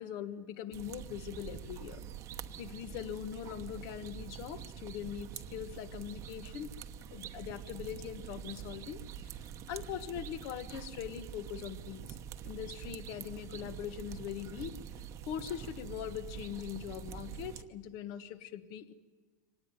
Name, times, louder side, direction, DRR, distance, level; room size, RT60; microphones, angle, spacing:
voice 1, 0.0-2.1 2.6-6.7 7.1-12.2 12.4-14.7 15.2-18.9, left 10 dB, 50° left, 12 dB, 1.4 m, -42 dB
sound 1, 0.7-17.6, right 9 dB, 35° right, 1.0 m, -46 dB
25.0 x 18.5 x 9.7 m, 1.4 s
supercardioid pair, 145°, 9 cm